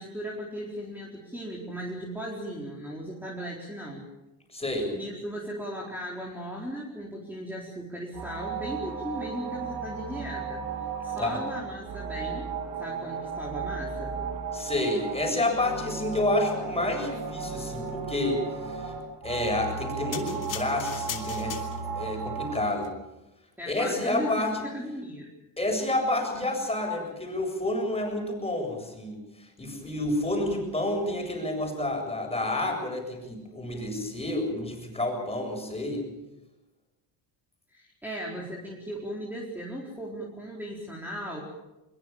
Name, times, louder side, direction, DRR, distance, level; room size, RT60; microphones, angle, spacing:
voice 1, 0.0-4.0 4.9-10.6 11.0-12.5 12.8-14.2 23.6-25.3 37.7-41.4, equal, 5° right, -3 dB, 4.4 m, -37 dB
voice 2, 4.5-4.9 11.2-11.4 14.5-18.9 19.2-21.6 22.0-22.9 23.7-24.6 25.6-29.2 29.6-36.0, left 1 dB, 15° left, 3 dB, 7.6 m, -29 dB
sound 1, 8.1-22.7, right 5 dB, 70° right, 6.7 m, -35 dB
sound 2, 20.1-22.1 22.7-22.9, left 8 dB, 45° left, 3.1 m, -38 dB
23.0 x 22.0 x 7.3 m, 0.98 s
cardioid pair, 110°, 45 cm